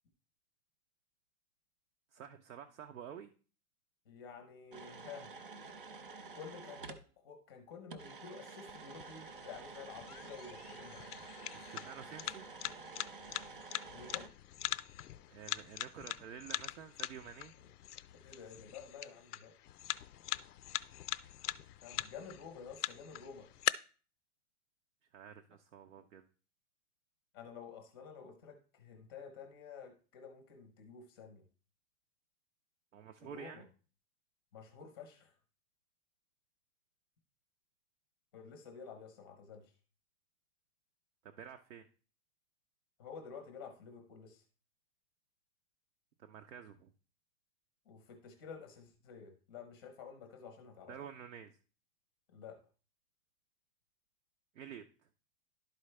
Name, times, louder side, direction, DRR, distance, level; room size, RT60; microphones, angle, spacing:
voice 1, 2.1-3.3 11.5-12.5 15.3-17.5 25.1-26.2 32.9-33.7 41.2-41.9 46.2-46.9 50.9-51.5 54.5-54.8, right 8 dB, 60° right, 5 dB, 0.8 m, -50 dB
voice 2, 4.1-5.3 6.3-11.2 13.9-14.3 18.2-19.5 21.8-23.5 27.3-31.4 33.2-33.6 34.5-35.3 38.3-39.7 43.0-44.4 47.9-50.9 52.3-52.6, left 6 dB, 15° left, 5 dB, 0.7 m, -51 dB
sound 1, 4.7-7.1 7.9-14.3, right 4 dB, 40° right, 0.4 m, -50 dB
sound 2, 8.7-23.7, left 13 dB, 80° left, 0.5 m, -42 dB
11.5 x 4.6 x 3.2 m, 0.38 s
hypercardioid pair, 170°, 45 cm